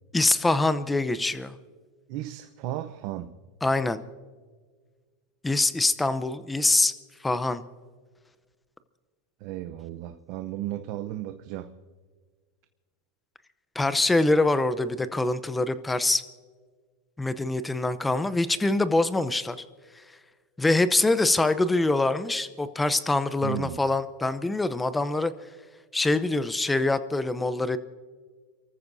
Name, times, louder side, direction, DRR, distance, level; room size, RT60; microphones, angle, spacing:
voice 1, 0.1-1.5 3.6-4.0 5.4-6.9 7.2-7.6 13.7-16.2 17.2-19.6 20.6-25.3 25.9-27.8, left 2 dB, 10° left, 0.7 m, -24 dB
voice 2, 2.1-3.3 9.4-11.7 23.4-23.8, right 14 dB, 50° right, 0.7 m, -34 dB
28.5 x 14.5 x 2.7 m
supercardioid pair, 130°, 0 cm